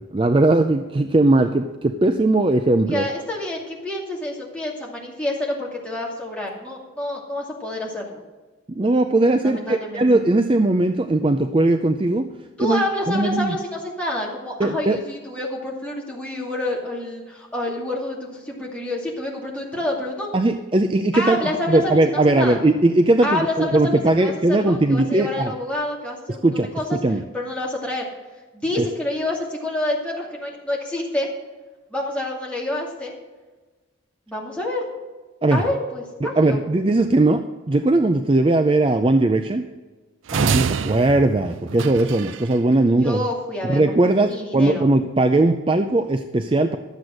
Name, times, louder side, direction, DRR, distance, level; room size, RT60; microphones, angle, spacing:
voice 1, 0.0-3.0 8.8-12.3 12.6-13.6 14.6-15.0 20.3-21.4 21.7-25.5 26.4-27.2 28.8-28.9 35.4-35.6 36.2-39.7 40.3-43.2 43.6-46.8, right 2 dB, 25° right, 7 dB, 0.4 m, -19 dB
voice 2, 2.8-8.2 9.4-10.1 12.6-20.3 21.1-22.6 23.2-26.5 26.7-26.8 27.3-28.0 28.6-31.3 31.9-33.1 34.3-34.9 35.5-36.6 43.0-44.9, left 1 dB, 5° left, -4 dB, 2.5 m, -28 dB
sound 1, 40.3-42.5, right 6 dB, 80° right, 0.5 m, -26 dB
12.0 x 7.9 x 6.4 m, 1.2 s
head